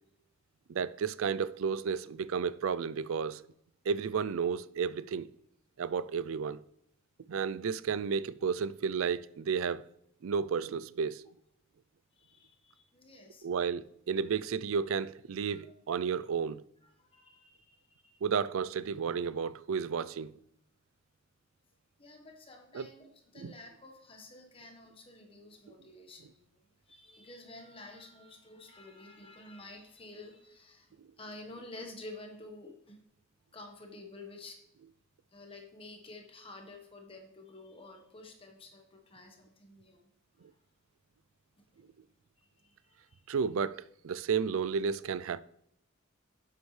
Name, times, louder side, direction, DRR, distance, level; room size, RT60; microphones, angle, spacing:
voice 1, 0.7-3.4 3.9-5.3 5.8-6.6 7.3-9.8 10.2-11.2 13.4-16.6 18.2-20.3 22.7-22.9 23.4-23.5 43.3-45.4, right 6 dB, 70° right, 0.4 m, -32 dB
voice 2, 12.2-13.5 15.4-15.7 16.8-18.2 19.2-19.3 22.0-26.6 26.9-33.0 33.5-34.6 35.3-40.1 40.4-40.5 42.4-43.2, left 2 dB, 25° left, 1.3 m, -51 dB
10.5 x 7.9 x 3.2 m
head